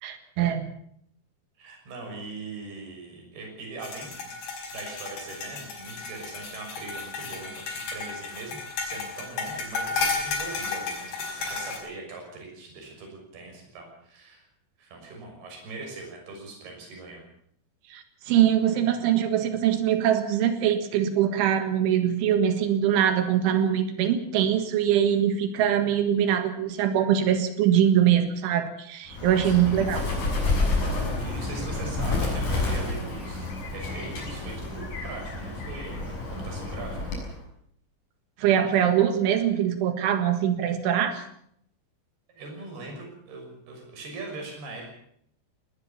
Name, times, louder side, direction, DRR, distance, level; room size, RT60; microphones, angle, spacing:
voice 1, 0.0-0.7 17.9-30.0 38.4-41.2, right 10 dB, 80° right, 8 dB, 4.1 m, -23 dB
voice 2, 1.6-4.3 4.7-14.5 14.8-17.2 29.4-30.1 30.8-37.1 42.3-44.9, right 3 dB, 55° right, 2 dB, 8.2 m, -41 dB
sound 1, 3.8-11.8, left 4 dB, 60° left, 7.2 m, -33 dB
Bird, 29.1-37.4, left 3 dB, 40° left, 7.7 m, -29 dB
20.5 x 19.5 x 7.1 m, 0.69 s
omnidirectional pair, 5.5 m